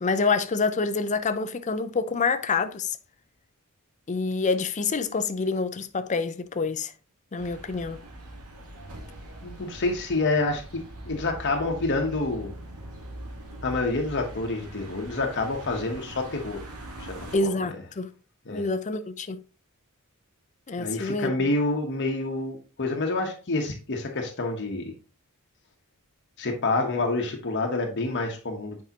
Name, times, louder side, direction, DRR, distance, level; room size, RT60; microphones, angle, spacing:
voice 1, 0.0-3.0 4.1-6.9 7.3-8.0 17.3-18.1 18.5-19.4 20.7-21.3, left 4 dB, 35° left, 0.5 m, -27 dB
sound 1, 7.4-17.4, right 1 dB, 85° right, 1.6 m, -42 dB
voice 2, 9.4-12.5 13.6-16.6 17.0-17.5 18.5-18.7 20.8-24.9 26.4-28.8, left 2 dB, 55° left, 1.0 m, -28 dB
8.3 x 4.8 x 2.9 m
head